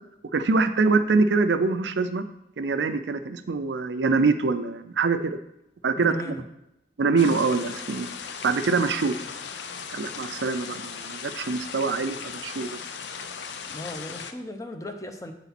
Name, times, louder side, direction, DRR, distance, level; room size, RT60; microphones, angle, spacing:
voice 1, 0.3-2.2 2.6-5.4 5.8-6.1 7.0-8.1 8.4-9.2 9.9-12.8, right 4 dB, 85° right, 10 dB, 0.5 m, -24 dB
voice 2, 6.0-6.4 9.1-9.3 13.7-15.3, equal, 20° left, 6 dB, 0.6 m, -36 dB
sound 1, 7.2-14.3, left 6 dB, 85° left, 0.5 m, -37 dB
8.0 x 4.1 x 4.2 m, 0.84 s
head